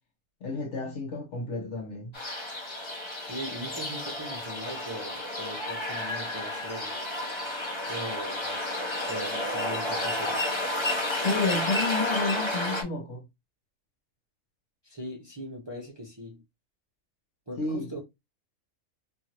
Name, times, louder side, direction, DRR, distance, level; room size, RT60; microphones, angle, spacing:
voice 1, 0.4-2.1 11.2-13.2 17.6-17.9, left 3 dB, 60° left, 1.2 m, -30 dB
sound 1, 2.1-12.8, left 1 dB, 25° left, 0.7 m, -31 dB
voice 2, 3.3-7.0 7.9-8.6 9.1-10.5 14.8-16.4 17.5-18.0, equal, 25° right, 0.7 m, -40 dB
2.8 x 2.7 x 2.9 m
omnidirectional pair, 1.4 m